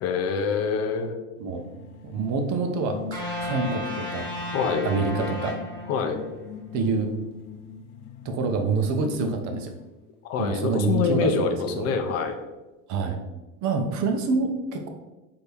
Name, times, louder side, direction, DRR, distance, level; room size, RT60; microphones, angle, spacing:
voice 1, 0.0-1.1 4.5-4.9 5.9-6.2 10.3-12.4, left 5 dB, 35° left, 6 dB, 0.5 m, -25 dB
sound 1, 1.4-10.0, left 7 dB, 85° left, 0.6 m, -41 dB
voice 2, 2.0-4.3 4.8-5.6 6.7-7.1 8.2-9.7 10.4-11.9 12.9-13.2 13.6-14.9, right 4 dB, 40° right, 5 dB, 0.7 m, -27 dB
sound 2, 3.1-6.4, left 1 dB, 10° left, 1.2 m, -33 dB
4.3 x 2.8 x 3.3 m, 1.1 s
hypercardioid pair, 105°, 43 cm